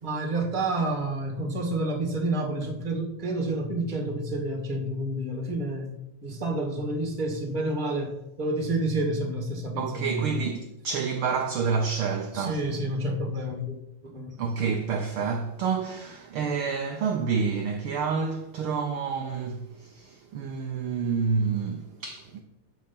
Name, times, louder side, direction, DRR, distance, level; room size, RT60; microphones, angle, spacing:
voice 1, 0.0-10.5 12.3-14.4, right 2 dB, 20° right, 1.5 m, -29 dB
voice 2, 9.8-12.6 14.4-22.4, right 5 dB, 70° right, 1.3 m, -28 dB
13.0 x 4.7 x 5.6 m
omnidirectional pair, 3.3 m